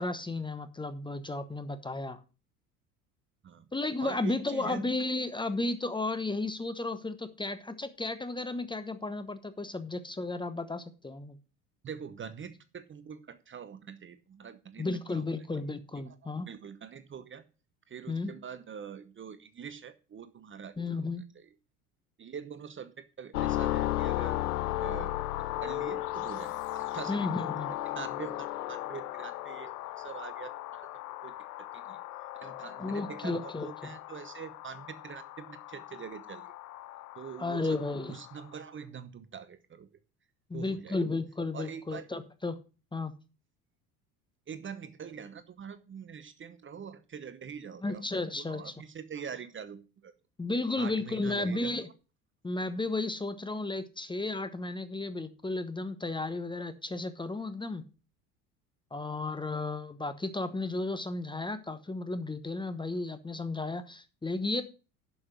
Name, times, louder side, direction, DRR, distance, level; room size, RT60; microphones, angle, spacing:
voice 1, 0.0-2.2 3.7-11.4 14.8-16.5 18.1-18.3 20.8-21.2 27.1-27.7 32.8-33.7 37.4-38.1 40.5-42.6 42.9-43.1 47.8-48.7 50.4-51.9 52.4-57.9 58.9-64.6, left 2 dB, 10° left, 11 dB, 1.0 m, -33 dB
voice 2, 4.0-4.9 11.8-15.2 15.7-15.8 16.0-17.4 17.9-21.0 21.3-21.5 22.2-25.1 25.4-30.9 31.2-32.0 32.3-36.5 37.1-37.8 38.1-40.0 40.5-41.0 41.5-42.1 44.5-48.1 48.3-50.1 50.8-51.8, right 7 dB, 25° right, 12 dB, 0.9 m, -44 dB
sound 1, 23.3-38.4, left 16 dB, 75° left, 0.6 m, -36 dB
11.0 x 5.7 x 6.1 m, 0.34 s
figure-of-eight pair, 65°, 45 cm